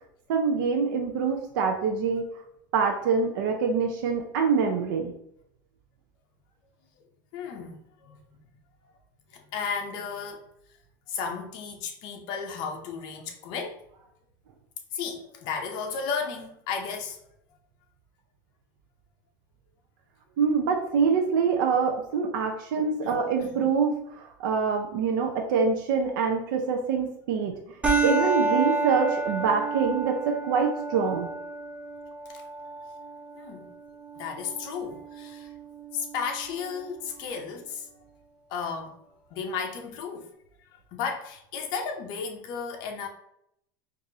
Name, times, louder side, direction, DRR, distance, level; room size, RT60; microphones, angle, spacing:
voice 1, 0.3-2.2 2.7-5.1 20.4-27.5 28.0-31.3, right 5 dB, 75° right, 0.6 m, -25 dB
voice 2, 7.3-8.2 9.3-10.5 11.1-13.8 14.9-17.2 23.0-23.6 29.4-29.5 32.3-32.4 33.3-33.7 34.2-35.5 35.9-38.0 38.5-39.0 39.3-40.3 40.6-43.1, left 6 dB, 45° left, 0.7 m, -34 dB
sound 1, 27.8-36.8, right 3 dB, 10° right, 0.5 m, -31 dB
4.6 x 2.6 x 2.7 m
supercardioid pair, 165°, 11 cm